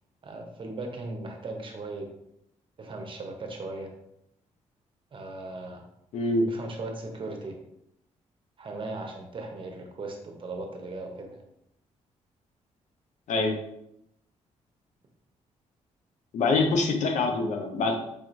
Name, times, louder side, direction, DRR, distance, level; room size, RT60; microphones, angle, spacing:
voice 1, 0.2-2.1 2.8-3.9 5.1-5.8 6.5-7.5 8.6-11.4, right 2 dB, 40° right, 2 dB, 0.8 m, -37 dB
voice 2, 6.1-6.5 13.3-13.6 16.3-18.0, left 3 dB, 75° left, 4 dB, 0.7 m, -25 dB
4.9 x 2.9 x 2.6 m, 0.78 s
cardioid pair, 90°, 13 cm